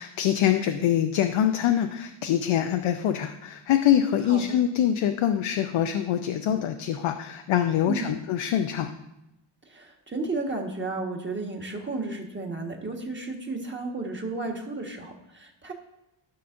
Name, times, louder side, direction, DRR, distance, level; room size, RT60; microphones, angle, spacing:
voice 1, 0.0-8.9, left 10 dB, 80° left, 6 dB, 0.6 m, -24 dB
voice 2, 7.9-8.2 9.6-15.7, right 3 dB, 25° right, 1 dB, 1.5 m, -33 dB
13.0 x 5.7 x 2.6 m, 0.88 s
cardioid pair, 85°, 48 cm